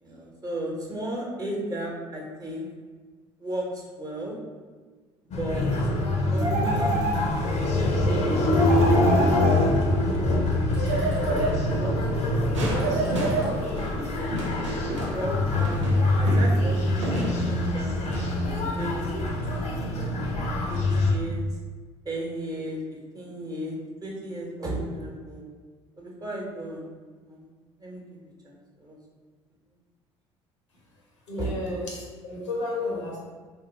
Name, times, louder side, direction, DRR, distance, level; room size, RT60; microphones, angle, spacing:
voice 1, 0.0-2.7 3.4-4.4 5.4-5.7 6.3-7.1 7.7-9.4 9.7-10.0 10.3-10.4 11.3-12.4 14.0-14.6 15.1-18.2 18.8-19.1 19.5-21.4 22.0-22.8 23.1-25.4 26.0-26.9 27.2-27.5 27.8-28.2 28.4-29.0 31.4-31.5, right 1 dB, 25° right, -2 dB, 1.1 m, -35 dB
sound 1, 5.3-21.1, left 1 dB, 50° left, 0.7 m, -24 dB
sound 2, 6.4-7.7 8.5-10.0 10.7-11.9 12.7-13.9, right 2 dB, 60° right, 0.8 m, -28 dB
sound 3, 12.5-18.4, equal, 90° right, 0.5 m, -32 dB
voice 2, 31.3-33.2, left 2 dB, 85° left, -4 dB, 0.9 m, -32 dB
3.1 x 2.6 x 4.0 m, 1.5 s
hypercardioid pair, 60°, 15 cm